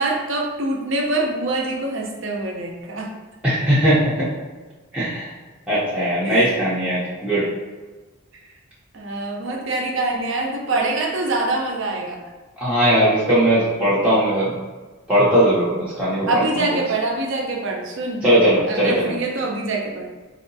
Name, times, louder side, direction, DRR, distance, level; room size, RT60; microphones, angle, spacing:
voice 1, 0.0-3.1 6.2-6.5 8.9-12.2 16.3-18.2 18.7-20.1, right 2 dB, 55° right, 0 dB, 0.6 m, -24 dB
voice 2, 3.4-4.3 4.9-5.3 5.7-7.5 12.6-14.5 15.1-16.6 18.2-19.2, right 1 dB, 5° right, -10 dB, 0.6 m, -19 dB
4.3 x 2.7 x 2.6 m, 1.3 s
head